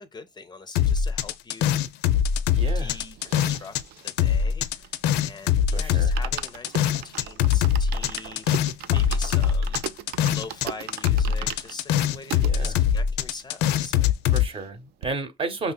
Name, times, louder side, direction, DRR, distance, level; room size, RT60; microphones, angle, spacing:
voice 1, 0.0-1.9 2.7-3.8 4.0-10.0 10.3-14.1, left 3 dB, 25° left, 0.5 m, -43 dB
sound 1, 0.8-3.8 4.1-10.7 10.9-14.5, left 9 dB, 85° left, 0.4 m, -22 dB
voice 2, 2.5-3.0 5.7-6.1 12.4-12.8 14.3-15.7, right 3 dB, 35° right, 0.8 m, -32 dB
sound 2, 2.5-5.3 5.6-5.7 6.0-12.5 13.1-13.2 13.4-13.5 13.8-14.7 15.0-15.1, right 11 dB, 70° right, 0.4 m, -39 dB
sound 3, 4.8-10.4, right 5 dB, 90° right, 1.1 m, -50 dB
5.5 x 2.7 x 2.2 m
cardioid pair, 110°, 17 cm